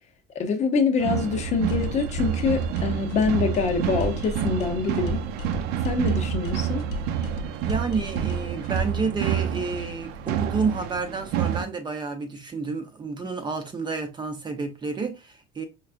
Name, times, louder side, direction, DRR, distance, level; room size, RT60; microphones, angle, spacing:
voice 1, 0.3-5.2 5.8-6.8, left 5 dB, 40° left, 0.6 m, -25 dB
sound 1, 1.0-11.6, right 9 dB, 65° right, 0.4 m, -28 dB
sound 2, 1.7-9.1, left 5 dB, 85° left, 0.6 m, -36 dB
voice 2, 7.6-15.6, right 4 dB, 25° right, 0.7 m, -30 dB
4.5 x 2.4 x 2.4 m
cardioid pair, 130°, 18 cm